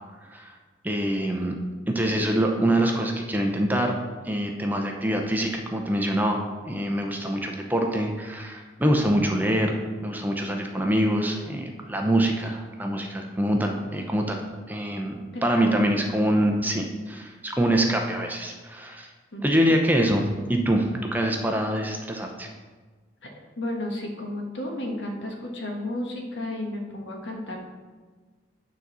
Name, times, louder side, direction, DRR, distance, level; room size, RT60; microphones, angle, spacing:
voice 1, 0.8-1.5 1.9-3.9 4.2-14.4 14.7-15.1 15.4-19.1 19.4-22.5, right 1 dB, 10° right, 2 dB, 0.6 m, -25 dB
voice 2, 15.3-15.9 19.3-19.7 23.2-23.3 23.6-27.6, left 1 dB, 70° left, 1 dB, 1.5 m, -32 dB
9.7 x 4.0 x 6.1 m, 1.4 s
head